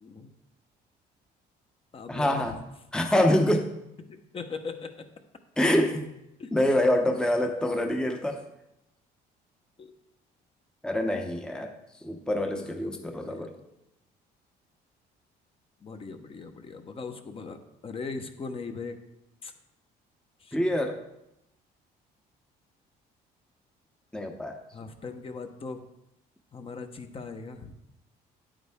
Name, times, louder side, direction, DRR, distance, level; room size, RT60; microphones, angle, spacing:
voice 1, 0.0-0.3 1.9-2.6 4.3-5.1 6.4-6.5 9.8-9.9 12.6-13.7 15.8-19.0 19.4-19.5 20.4-20.6 24.7-25.9 26.5-27.8, left 4 dB, 35° left, 6 dB, 0.9 m, -40 dB
voice 2, 2.1-2.6 2.9-3.7 5.6-6.0 6.5-8.4 10.8-11.7 12.0-13.5 20.5-21.0 24.1-24.6, left 1 dB, 5° left, 4 dB, 0.8 m, -25 dB
9.5 x 8.7 x 3.6 m, 0.85 s
cardioid pair, 110°, 17 cm